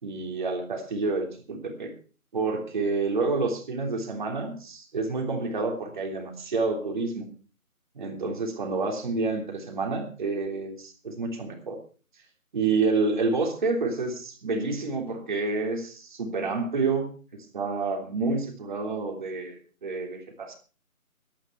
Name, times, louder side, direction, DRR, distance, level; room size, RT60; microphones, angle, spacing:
voice 1, 0.0-1.9 2.3-7.3 7.9-11.8 12.5-20.5, right 3 dB, 30° right, 2 dB, 3.4 m, -29 dB
15.0 x 13.0 x 4.6 m, 0.38 s
figure-of-eight pair, 160°, 44 cm